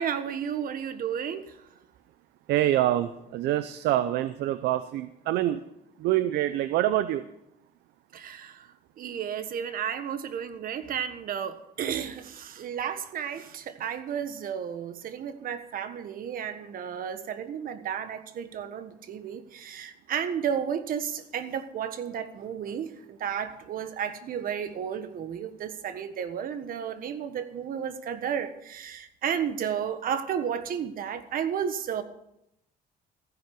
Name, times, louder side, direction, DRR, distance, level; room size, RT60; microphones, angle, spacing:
voice 1, 0.0-1.6 8.1-8.7 9.0-32.0, right 8 dB, 60° right, 1.4 m, -33 dB
voice 2, 2.5-5.6 6.0-7.2, right 13 dB, 80° right, 0.6 m, -26 dB
15.0 x 10.5 x 6.1 m
cardioid pair, 110°, 17 cm